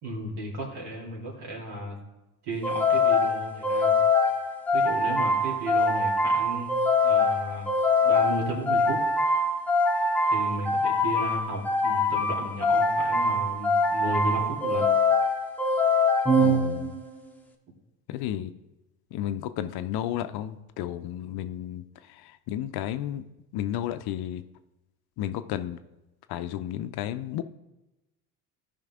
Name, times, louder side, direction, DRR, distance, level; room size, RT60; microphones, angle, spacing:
voice 1, 0.0-2.0 2.4-3.9 4.7-6.7 7.0-7.7 8.0-9.0 10.3-14.9, right 1 dB, 60° right, -1 dB, 3.0 m, -34 dB
sound 1, 2.6-17.2, left 2 dB, 5° left, 1.0 m, -24 dB
voice 2, 16.4-17.0 18.1-18.5 19.1-23.2 23.5-24.4 25.2-25.8 26.3-27.4, left 11 dB, 55° left, 10 dB, 0.7 m, -33 dB
13.5 x 5.3 x 3.7 m, 0.99 s
hypercardioid pair, 75°, 45 cm